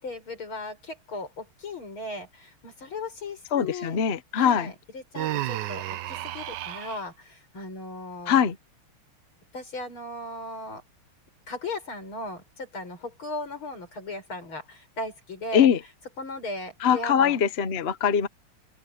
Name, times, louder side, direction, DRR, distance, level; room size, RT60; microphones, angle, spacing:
voice 1, 0.0-4.0 4.3-8.4 9.5-10.8 11.5-15.7 16.2-17.4, left 2 dB, 70° left, 7.1 m, -37 dB
voice 2, 3.5-4.7 8.3-8.6 15.5-15.8 16.8-18.3, left 8 dB, 45° left, 0.8 m, -22 dB
Human voice, 5.1-7.0, right 14 dB, 70° right, 1.0 m, -32 dB
open air
omnidirectional pair, 2.4 m